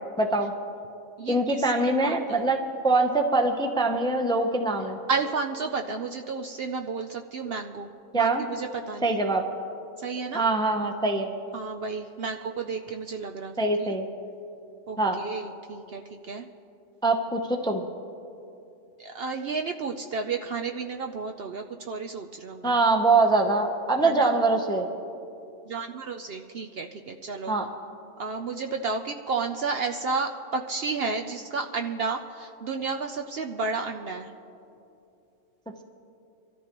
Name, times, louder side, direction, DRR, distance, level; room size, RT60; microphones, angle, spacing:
voice 1, 0.2-0.5 1.3-2.6 2.8-5.0 8.1-8.4 9.0-9.4 10.3-11.3 13.6-14.0 15.0-15.2 17.0-17.8 22.6-24.9 27.5-27.7, right 2 dB, 5° left, 4 dB, 0.5 m, -23 dB
voice 2, 1.2-2.4 5.1-9.2 10.0-10.4 11.5-13.9 14.9-16.5 19.0-22.8 24.0-24.3 25.7-27.5 28.2-34.3, right 4 dB, 60° right, 4 dB, 0.7 m, -32 dB
24.0 x 13.5 x 3.0 m, 2.8 s
omnidirectional pair, 1.4 m